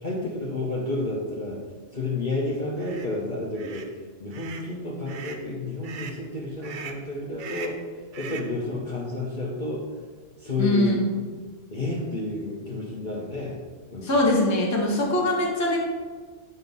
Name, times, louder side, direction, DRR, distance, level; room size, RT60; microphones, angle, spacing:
voice 1, 0.0-1.6 1.9-3.9 4.2-7.8 8.2-9.8 10.4-11.0 11.7-13.6 13.9-14.2, left 2 dB, 40° left, -4 dB, 0.9 m, -30 dB
sound 1, 2.8-3.1 3.5-3.9 4.3-4.7 5.1-5.5 5.8-6.2 6.6-7.0 7.4-7.8 8.1-8.5, right 6 dB, 60° right, 0.5 m, -40 dB
voice 2, 10.6-11.0 14.0-15.8, left 1 dB, 15° left, -2 dB, 0.8 m, -22 dB
7.7 x 2.8 x 5.3 m, 1.4 s
omnidirectional pair, 1.3 m